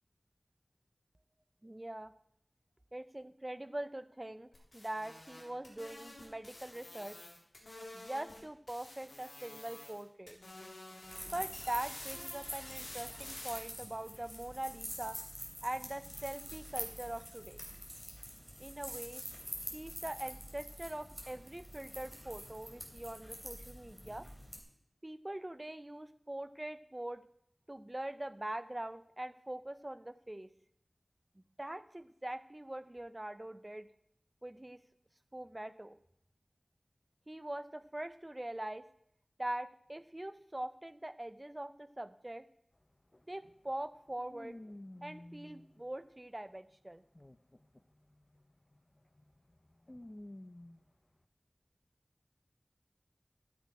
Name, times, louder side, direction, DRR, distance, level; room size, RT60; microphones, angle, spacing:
voice 1, 1.6-2.1 2.9-7.2 7.9-10.4 11.3-15.2 15.6-17.6 18.6-19.2 19.7-24.3 25.0-27.2 27.7-30.5 31.4-33.9 34.4-34.8 35.3-36.0 37.3-38.8 39.4-42.4 43.3-44.6 45.0-47.0, right 1 dB, 30° right, 13 dB, 0.7 m, -42 dB
sound 1, 4.5-8.4 8.7-10.0 10.3-13.6, left 1 dB, 85° left, 3.6 m, -50 dB
sound 2, 11.0-24.6, equal, ahead, 3.1 m, -46 dB
sound 3, 42.7-42.8 43.1-46.4 46.9-51.0, left 1 dB, 30° left, 0.6 m, -53 dB
13.0 x 8.3 x 4.8 m, 0.71 s
wide cardioid pair, 50°, 0 cm